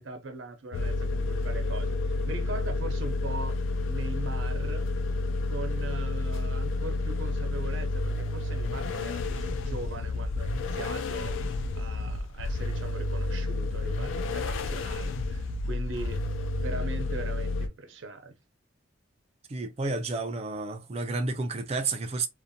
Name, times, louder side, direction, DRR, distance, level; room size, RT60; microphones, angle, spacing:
voice 1, 0.0-3.6 3.9-4.9 5.5-11.4 11.7-16.2 16.6-18.4, right 3 dB, 85° right, 0.6 m, -40 dB
sound 1, 0.7-17.7, left 2 dB, 85° left, 0.3 m, -30 dB
voice 2, 19.5-22.3, right 3 dB, 35° right, 0.4 m, -31 dB
2.5 x 2.1 x 2.6 m
head